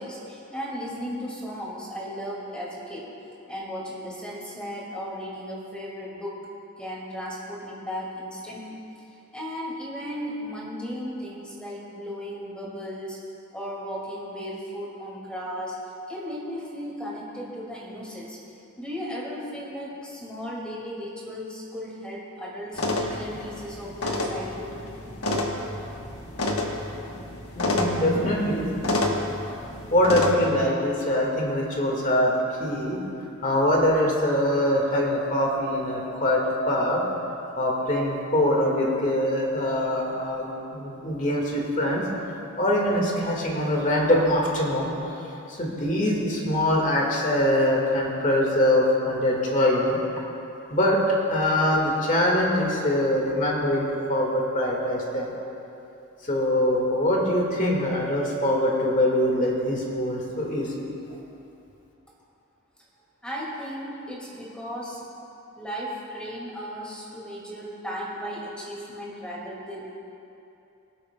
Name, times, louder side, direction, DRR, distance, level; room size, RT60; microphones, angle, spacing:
voice 1, 0.0-3.1 3.5-6.4 6.8-8.7 9.3-13.2 13.5-15.8 16.1-18.4 18.8-24.8 63.2-65.1 65.6-69.9, equal, 5° left, -5 dB, 2.0 m, -35 dB
sound 1, 22.7-30.3, left 1 dB, 85° left, 1.2 m, -29 dB
voice 2, 27.5-28.7 29.9-33.0 33.4-37.0 37.6-42.0 42.6-44.9 45.5-50.0 50.7-51.0 51.3-55.3 56.3-60.7, left 1 dB, 35° left, -2 dB, 1.7 m, -23 dB
23.5 x 8.4 x 2.2 m, 2.8 s
head